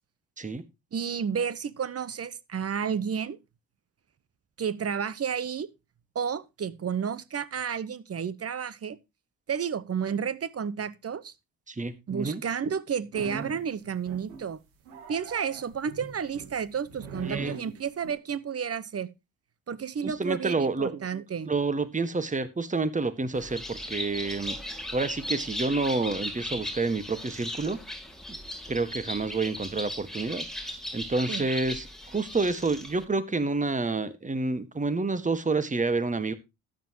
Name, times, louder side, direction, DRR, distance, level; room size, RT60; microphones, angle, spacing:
voice 1, 0.9-3.4 4.6-5.7 6.1-9.0 9.5-11.3 12.1-14.6 15.1-19.1 19.7-21.5 31.3-31.4, right 7 dB, 35° right, 1.0 m, -31 dB
voice 2, 11.7-12.4 17.2-17.6 20.0-20.9 21.4-24.6 24.9-27.8 28.7-36.3, right 3 dB, 20° right, 1.7 m, -29 dB
sound 1, 13.1-13.7 14.1-14.5 14.9-18.1, right 5 dB, 85° right, 2.1 m, -41 dB
Bird, 23.3-33.0, left 1 dB, ahead, 2.4 m, -37 dB
13.0 x 9.8 x 3.0 m
hypercardioid pair, 50°, 41 cm